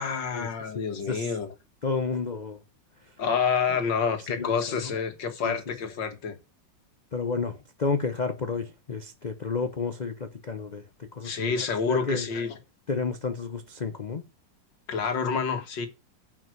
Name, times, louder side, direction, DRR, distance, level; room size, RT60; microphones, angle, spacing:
voice 1, 0.0-1.5 3.2-6.4 11.2-12.5 14.9-15.9, left 5 dB, 80° left, 2.3 m, -28 dB
voice 2, 0.7-1.3 1.8-2.6 4.1-4.8 5.4-5.6 7.1-12.3 12.9-14.2, left 4 dB, 60° left, 0.4 m, -31 dB
9.4 x 5.9 x 7.8 m
omnidirectional pair, 2.0 m